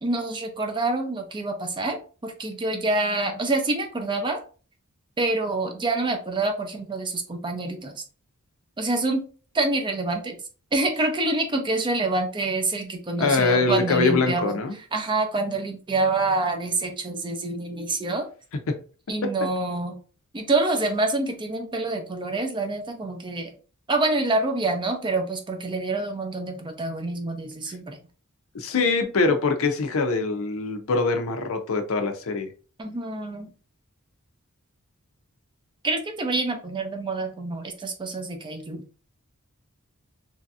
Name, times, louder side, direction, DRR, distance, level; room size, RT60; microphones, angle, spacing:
voice 1, 0.0-4.4 5.2-8.0 8.8-9.2 9.5-10.4 10.7-18.3 19.1-20.0 20.3-23.5 23.9-28.0 32.8-33.5 35.8-38.9, right 2 dB, 20° right, 0.5 m, -26 dB
voice 2, 13.2-14.8 18.7-18.8 28.5-32.5, left 4 dB, 65° left, 0.6 m, -23 dB
3.1 x 2.7 x 2.4 m
head